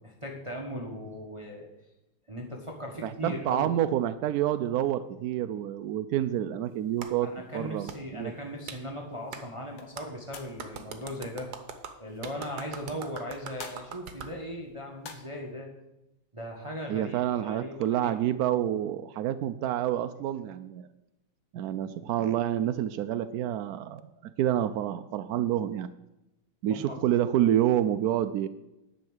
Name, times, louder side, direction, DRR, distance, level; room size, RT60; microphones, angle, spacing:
voice 1, 0.0-1.7 2.3-3.7 7.2-11.5 12.0-15.7 16.3-18.2 26.7-27.0, equal, 20° right, 0 dB, 1.2 m, -38 dB
voice 2, 3.0-7.3 7.5-8.3 16.9-20.9 21.5-24.0 24.4-25.9 26.6-28.5, right 11 dB, 80° right, 10 dB, 0.8 m, -28 dB
Clapping, 7.0-7.1 7.9-8.0 8.7-8.8 9.3-9.4 10.0-10.1 10.6-14.3, right 6 dB, 60° right, 1.4 m, -41 dB
sound 1, 9.6-15.5, left 6 dB, 75° left, 1.8 m, -51 dB
10.5 x 5.7 x 8.0 m, 0.91 s
omnidirectional pair, 2.1 m